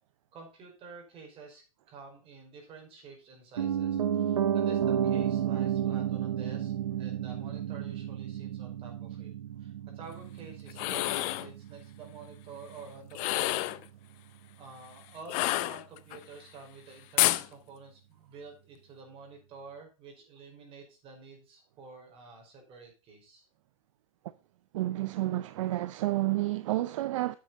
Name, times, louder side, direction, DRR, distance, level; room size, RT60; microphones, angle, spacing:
voice 1, 0.3-9.3 9.6-13.6 14.6-23.4, right 4 dB, 30° right, 5.3 m, -49 dB
Piano, 3.6-13.6 13.9-14.0, right 9 dB, 80° right, 1.1 m, -32 dB
sound 1, 10.7-11.5 13.1-13.8 15.3-16.2 17.2-17.5, left 18 dB, 40° left, 0.7 m, -28 dB
voice 2, 24.7-27.4, right 16 dB, 60° right, 0.6 m, -30 dB
9.1 x 8.3 x 4.1 m
hypercardioid pair, 120°, 18 cm